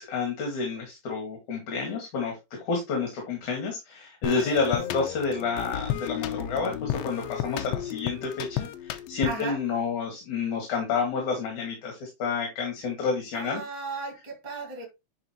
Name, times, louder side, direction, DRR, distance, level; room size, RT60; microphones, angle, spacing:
voice 1, 0.0-13.6, left 5 dB, 60° left, 3.3 m, -29 dB
sound 1, 4.2-9.6, left 11 dB, 85° left, 1.5 m, -33 dB
voice 2, 9.2-9.6 13.3-14.9, right 4 dB, 15° right, 1.8 m, -35 dB
10.5 x 4.3 x 3.0 m
omnidirectional pair, 4.0 m